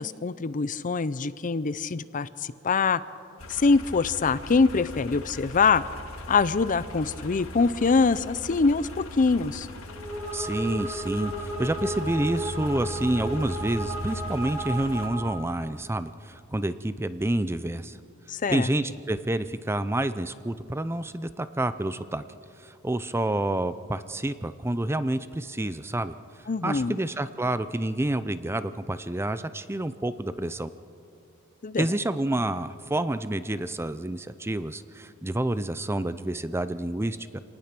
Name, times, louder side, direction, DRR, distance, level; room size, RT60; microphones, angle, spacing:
voice 1, 0.0-3.0 3.5-5.8 6.3-9.7 18.3-18.7 26.5-26.9 31.6-31.9, left 4 dB, 40° left, 16 dB, 0.5 m, -24 dB
sound 1, 3.4-15.1, left 1 dB, 70° left, 2.0 m, -39 dB
sound 2, 9.8-15.6, right 1 dB, 40° right, 4.1 m, -34 dB
voice 2, 10.3-18.0 18.5-22.2 22.6-26.1 26.6-30.7 31.8-37.4, right 1 dB, 10° right, 13 dB, 0.5 m, -28 dB
27.0 x 19.0 x 6.0 m, 2.5 s
head